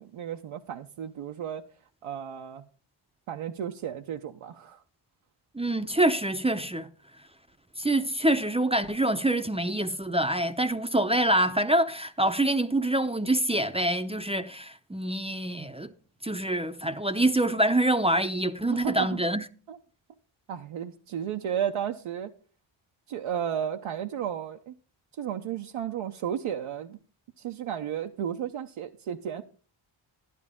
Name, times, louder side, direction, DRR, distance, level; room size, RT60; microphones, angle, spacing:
voice 1, 0.0-1.6 2.0-2.6 3.3-4.8 18.7-19.2 19.7-19.8 20.5-22.3 23.1-24.7 25.2-27.0 27.4-29.4, right 9 dB, 80° right, 0.8 m, -33 dB
voice 2, 5.5-6.9 7.8-15.9 16.2-19.4, right 1 dB, 10° right, 0.6 m, -26 dB
12.0 x 11.5 x 3.6 m
cardioid pair, 90°, 49 cm